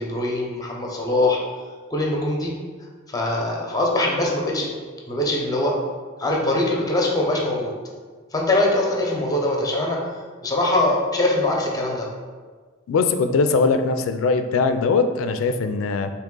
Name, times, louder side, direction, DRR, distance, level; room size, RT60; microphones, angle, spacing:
voice 1, 0.0-1.4 1.9-2.5 3.1-4.7 5.1-5.7 6.2-7.7 8.3-10.0 10.4-12.1, left 1 dB, 20° left, -1 dB, 0.6 m, -22 dB
voice 2, 12.9-16.1, left 4 dB, 90° left, 8 dB, 0.3 m, -21 dB
3.6 x 2.8 x 3.7 m, 1.5 s
head